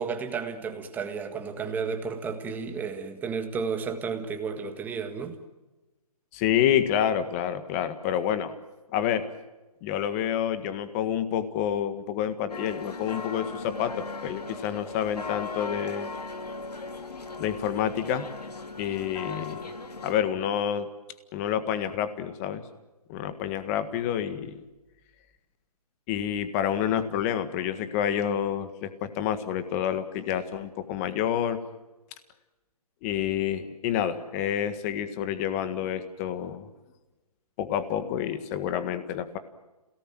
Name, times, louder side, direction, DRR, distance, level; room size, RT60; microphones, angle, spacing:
voice 1, 0.0-5.4, right 5 dB, 10° right, 1.7 m, -32 dB
voice 2, 6.3-8.5 8.9-9.3 9.8-16.1 17.4-18.2 18.8-19.7 20.0-20.9 21.3-22.6 23.1-24.6 26.1-31.6 33.0-36.7 37.6-39.4, left 9 dB, 25° left, 1.7 m, -28 dB
sound 1, 12.5-20.1, left 3 dB, 90° left, 3.1 m, -38 dB
28.5 x 18.0 x 9.1 m
hypercardioid pair, 155°, 20 cm